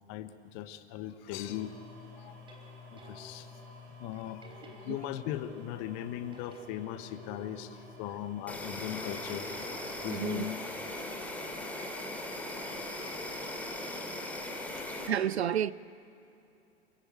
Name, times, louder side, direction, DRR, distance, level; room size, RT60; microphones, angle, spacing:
voice 1, 0.1-1.8 2.2-2.4 2.9-3.5 4.0-4.5 4.8-9.5 10.0-10.6 14.8-14.9, left 12 dB, 40° left, 1.3 m, -38 dB
sound 1, 1.3-11.3 11.9-12.0, left 3 dB, 45° right, 6.4 m, -52 dB
sound 2, 2.2-3.6 4.4-5.5 6.3-7.7, equal, 15° right, 3.8 m, -54 dB
Insect, 8.5-15.1, left 1 dB, 5° left, 3.0 m, -39 dB
voice 2, 10.1-10.5 11.1-11.2 15.1-15.7, right 9 dB, 70° right, 0.6 m, -31 dB
27.0 x 17.5 x 8.9 m
figure-of-eight pair, 90°, 34 cm